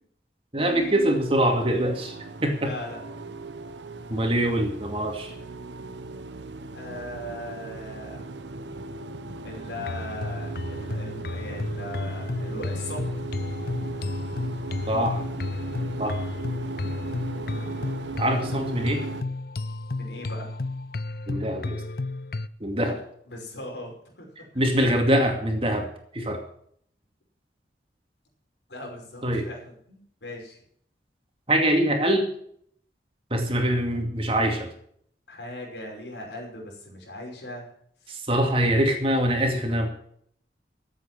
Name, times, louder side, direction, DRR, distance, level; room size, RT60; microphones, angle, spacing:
voice 1, 0.5-2.2 2.4-2.7 4.1-5.3 14.9-15.2 16.0-16.2 18.2-19.0 21.3-21.8 22.6-23.0 24.5-25.9 26.1-26.4 29.2-29.5 31.5-32.3 33.3-34.7 38.1-39.9, right 1 dB, 30° right, 4 dB, 2.4 m, -24 dB
sound 1, 0.6-19.2, right 3 dB, 90° right, 1.0 m, -37 dB
voice 2, 2.6-3.0 6.7-8.2 9.4-13.1 19.9-20.5 23.3-24.3 24.5-24.9 28.7-29.6 29.9-30.6 35.3-37.7 38.0-38.2, left 1 dB, 80° left, -1 dB, 5.5 m, -39 dB
sound 2, 9.8-22.5, left 3 dB, 55° left, 0.6 m, -32 dB
14.0 x 8.2 x 7.5 m, 0.65 s
head